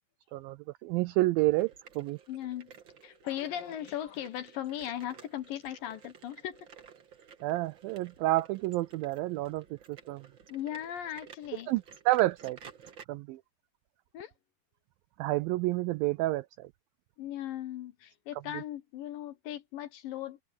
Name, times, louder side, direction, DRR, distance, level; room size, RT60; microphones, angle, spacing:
voice 1, 0.3-2.2 7.4-10.3 11.7-12.6 13.1-13.4 15.2-16.7, right 18 dB, 85° right, 2.0 m, -29 dB
sound 1, 1.5-13.0, right 7 dB, 50° right, 1.4 m, -54 dB
voice 2, 2.3-2.7 3.0-6.7 10.5-11.7 14.1-14.3 17.2-20.4, left 11 dB, 70° left, 2.5 m, -38 dB
omnidirectional pair, 4.7 m